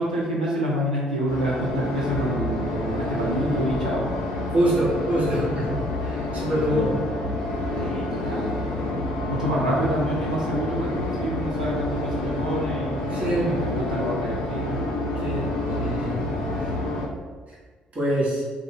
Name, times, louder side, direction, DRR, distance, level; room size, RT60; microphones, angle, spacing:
voice 1, 0.0-4.0 6.7-6.9 7.7-8.5 9.3-14.8, equal, 85° right, -6 dB, 0.3 m, -27 dB
sound 1, 1.3-17.0, left 1 dB, 70° left, 0.4 m, -28 dB
voice 2, 4.5-7.0 13.1-13.5 15.1-15.5 15.8-16.2 17.9-18.4, right 1 dB, 35° right, -7 dB, 1.0 m, -25 dB
2.4 x 2.1 x 3.7 m, 1.5 s
figure-of-eight pair, 40°, 4 cm